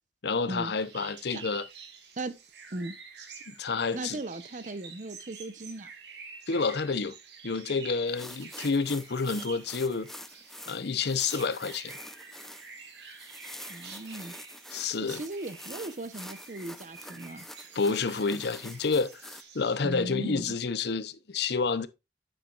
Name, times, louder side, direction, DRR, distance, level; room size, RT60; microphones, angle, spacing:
voice 1, 0.2-1.7 3.5-4.2 6.5-7.1 7.4-10.1 10.7-12.0 14.7-15.2 17.7-21.9, left 4 dB, 65° left, 0.7 m, -29 dB
sound 1, 0.8-19.8, right 5 dB, 65° right, 1.9 m, -48 dB
voice 2, 3.9-5.9 13.7-14.3 15.1-17.5 19.8-20.6, right 2 dB, 45° right, 0.9 m, -37 dB
sound 2, 8.1-19.4, left 1 dB, ahead, 0.6 m, -47 dB
8.8 x 7.4 x 2.4 m
head